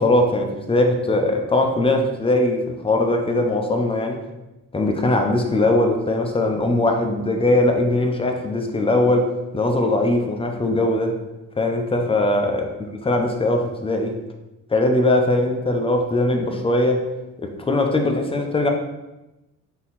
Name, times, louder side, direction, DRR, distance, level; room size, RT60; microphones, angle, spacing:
voice 1, 0.0-4.2 4.7-11.2 11.6-12.7 13.1-14.2 14.7-17.1 17.4-18.7, left 2 dB, 20° left, 3 dB, 0.6 m, -20 dB
3.8 x 2.9 x 4.1 m, 1.0 s
cardioid pair, 90°, 30 cm